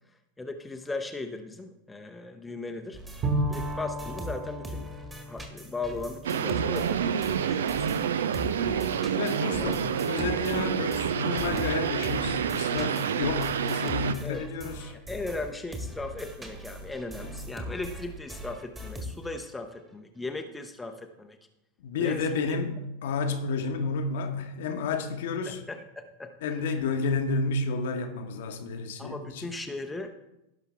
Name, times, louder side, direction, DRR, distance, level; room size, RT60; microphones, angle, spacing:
voice 1, 0.4-3.0 3.5-4.9 5.3-8.0 8.9-9.8 14.2-14.4 15.1-21.4 22.0-22.6 25.4-26.3 26.6-26.7 29.0-30.2, left 2 dB, 10° left, 5 dB, 0.8 m, -37 dB
sound 1, 2.9-8.1 8.3-19.5, equal, 15° right, 1.7 m, -41 dB
Bowed string instrument, 3.2-7.0, right 1 dB, 30° right, 2.0 m, -34 dB
sound 2, 6.2-14.1, right 8 dB, 60° right, 0.5 m, -28 dB
voice 2, 9.2-14.9 17.2-17.4 21.8-25.6 26.4-29.5, left 4 dB, 55° left, 6 dB, 1.2 m, -31 dB
17.0 x 5.8 x 3.5 m, 0.90 s
figure-of-eight pair, 90°, 0 cm